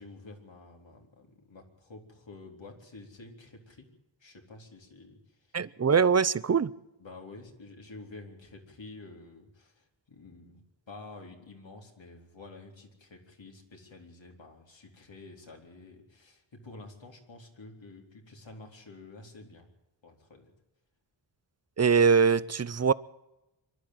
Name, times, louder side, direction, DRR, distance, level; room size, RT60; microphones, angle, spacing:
voice 1, 0.0-3.9 4.2-5.6 7.0-19.7 20.0-20.5, left 3 dB, 75° left, 3.9 m, -49 dB
voice 2, 5.5-6.7 21.8-22.9, right 6 dB, 35° right, 0.7 m, -23 dB
25.0 x 11.5 x 9.4 m
wide cardioid pair, 55°, 45 cm